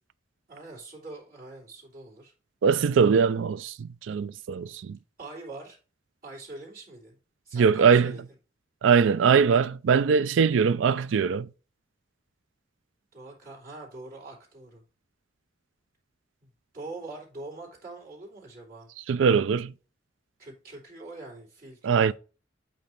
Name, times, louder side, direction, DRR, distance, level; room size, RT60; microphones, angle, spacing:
voice 1, 0.5-2.3 5.2-5.8 6.2-7.2 7.4-8.2 13.1-14.8 16.4-18.9 20.4-22.1, right 2 dB, 50° right, 3.0 m, -43 dB
voice 2, 2.6-5.0 7.5-8.1 8.8-11.5 19.1-19.7 21.8-22.1, right 6 dB, 85° right, 0.4 m, -22 dB
8.4 x 2.8 x 4.4 m
head